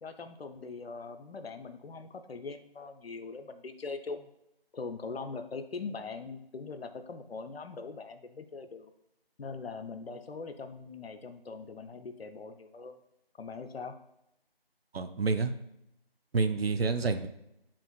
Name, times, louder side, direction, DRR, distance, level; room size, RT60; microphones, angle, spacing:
voice 1, 0.0-4.3 4.7-8.9 9.4-13.0 13.3-13.9, left 4 dB, 80° left, 9 dB, 0.5 m, -41 dB
voice 2, 14.9-15.5 16.3-17.3, right 4 dB, 80° right, 10 dB, 0.5 m, -28 dB
7.2 x 2.5 x 2.3 m, 0.82 s
figure-of-eight pair, 175°, 30 cm